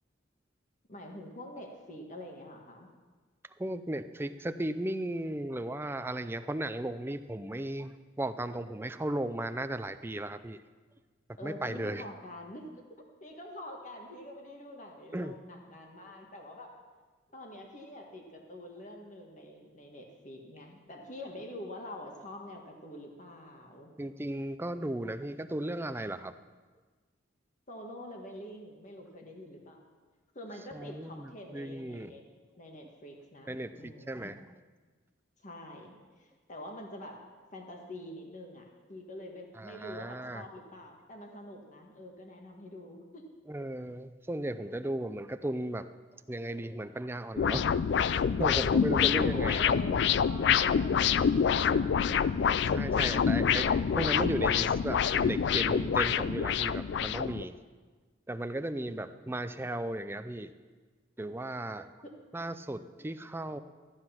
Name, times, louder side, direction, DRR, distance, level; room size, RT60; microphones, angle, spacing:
voice 1, 0.9-2.9 11.4-12.7 13.2-16.7 17.3-23.9 27.7-29.8 30.3-32.2 32.6-34.3 35.4-37.2 37.5-43.2 49.1-52.1 58.8-59.3 62.0-62.1, left 1 dB, 40° left, 2 dB, 1.7 m, -46 dB
voice 2, 3.6-10.6 11.3-12.1 15.1-15.3 24.0-26.3 30.7-32.2 33.5-34.4 39.6-40.4 43.5-45.9 46.3-47.7 48.1-49.6 52.7-57.5 58.3-60.5 61.2-61.9 62.3-63.6, right 1 dB, 10° right, 10 dB, 0.4 m, -35 dB
sound 1, 47.4-57.4, left 7 dB, 65° left, 0.3 m, -26 dB
14.5 x 9.7 x 5.8 m, 1.4 s
head